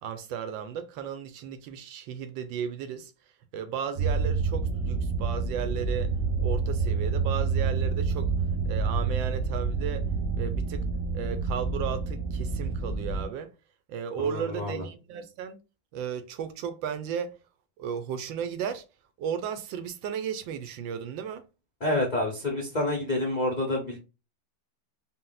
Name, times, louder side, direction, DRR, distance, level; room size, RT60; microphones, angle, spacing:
voice 1, 0.0-3.1 3.5-6.1 6.4-8.3 8.6-10.1 10.3-10.8 11.1-13.5 13.9-15.6 15.9-17.3 17.8-18.8 19.2-21.4, right 8 dB, 85° right, 1.3 m, -34 dB
sound 1, 4.0-13.2, right 4 dB, 55° right, 0.8 m, -28 dB
voice 2, 14.2-14.9 21.8-24.0, left 1 dB, 55° left, 0.4 m, -28 dB
3.9 x 2.1 x 3.9 m
omnidirectional pair, 2.0 m